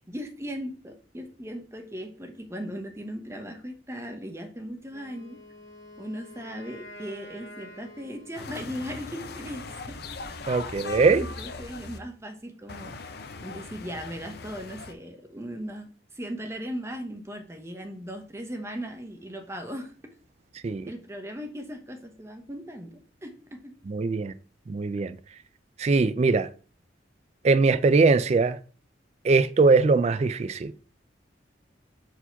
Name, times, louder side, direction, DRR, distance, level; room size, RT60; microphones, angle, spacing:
voice 1, 0.1-5.4 6.0-9.9 11.1-13.1 13.4-19.9 20.9-23.7, equal, 15° right, 0.9 m, -38 dB
Wind instrument woodwind instrument, 4.9-9.0, left 1 dB, 90° left, 1.8 m, -48 dB
sound 1, 8.3-12.0 12.7-14.9, left 4 dB, 60° left, 0.6 m, -39 dB
voice 2, 10.5-11.2 20.6-20.8 23.9-24.3 24.7-25.2 25.8-26.5 27.4-28.6 29.2-30.7, right 4 dB, 35° right, 0.3 m, -21 dB
4.7 x 4.2 x 5.7 m
head